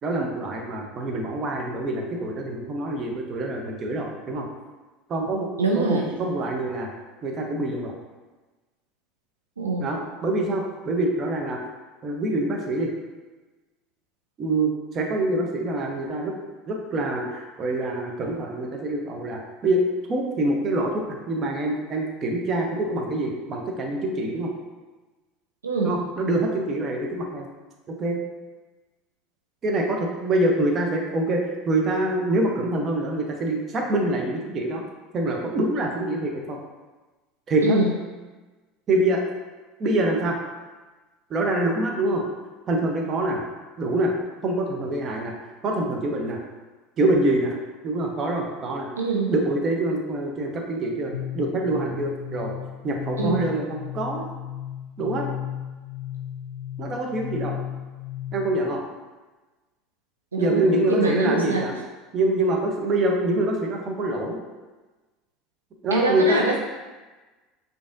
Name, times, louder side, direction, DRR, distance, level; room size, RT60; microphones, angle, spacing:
voice 1, 0.0-4.5 5.1-5.5 5.7-6.9 7.2-7.9 9.8-11.6 12.0-12.9 14.4-16.3 16.7-19.8 20.1-24.5 25.8-27.5 27.9-28.2 29.6-34.8 35.1-36.6 37.5-37.8 38.9-39.2 39.8-40.4 41.3-42.2 42.7-43.4 43.8-44.1 44.4-45.3 45.6-46.4 47.0-47.6 47.8-48.9 49.3-52.5 52.8-54.2 55.0-55.3 56.8-57.5 58.3-58.8 60.4-61.8 62.1-64.4 65.8-66.5, right 1 dB, 40° right, 1 dB, 0.7 m, -25 dB
voice 2, 5.6-6.1 9.6-9.9 25.6-25.9 37.6-37.9 49.0-49.3 53.2-53.4 60.3-60.6 60.9-61.6 65.9-66.6, right 3 dB, 90° right, 0 dB, 0.3 m, -23 dB
sound 1, 51.1-58.7, left 11 dB, 80° left, 0.3 m, -35 dB
4.8 x 2.6 x 2.5 m, 1.2 s
hypercardioid pair, 75°, 0 cm